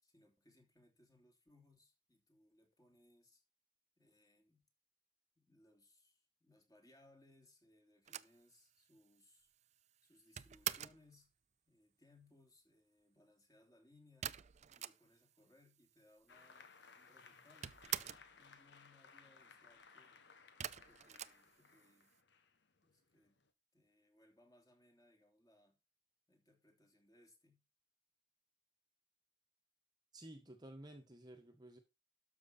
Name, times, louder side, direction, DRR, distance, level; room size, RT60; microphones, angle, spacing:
voice 1, 0.0-3.4 4.0-4.6 5.4-9.5 10.0-11.3 11.7-14.4 14.7-20.3 20.8-22.1 22.8-23.4 23.7-25.8 26.3-27.6, left 2 dB, 20° left, 3.2 m, -69 dB
sound 1, 8.1-11.1 14.2-15.4 15.7-15.8 15.9-16.7 17.0-18.4 20.6-22.1, right 10 dB, 40° right, 0.5 m, -45 dB
Applause, 16.3-23.5, left 5 dB, 65° left, 1.6 m, -62 dB
voice 2, 30.1-31.8, right 1 dB, 25° right, 1.4 m, -54 dB
12.5 x 6.2 x 4.2 m
head